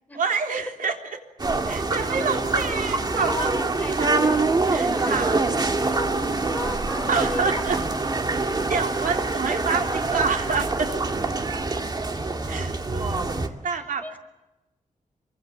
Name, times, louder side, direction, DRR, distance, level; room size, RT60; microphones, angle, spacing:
voice 1, 0.2-1.0 1.7-3.6 4.0-4.1 4.6-5.4 7.1-7.8 8.3-10.9 12.5-13.2 13.6-14.0, right 5 dB, 85° right, 3 dB, 3.8 m, -27 dB
sound 1, 1.4-13.5, right 3 dB, 30° right, 2.2 m, -25 dB
voice 2, 3.1-4.2 4.9-5.2 5.7-7.8 9.1-9.2 13.7-14.2, left 2 dB, 10° left, 6 dB, 3.8 m, -34 dB
26.0 x 24.5 x 7.6 m, 0.98 s
wide cardioid pair, 165°, 14 cm